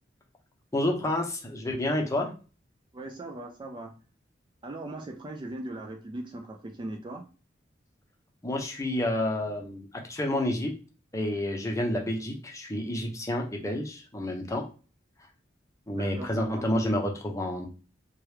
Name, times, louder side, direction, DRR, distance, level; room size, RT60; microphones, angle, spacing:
voice 1, 0.7-2.3 8.4-10.7 11.1-14.6 15.9-17.7, left 1 dB, 15° left, 1 dB, 0.6 m, -29 dB
voice 2, 2.9-3.9 4.6-7.3 16.0-16.6, right 2 dB, 25° right, 3 dB, 0.3 m, -39 dB
3.0 x 2.3 x 3.2 m, 0.35 s
head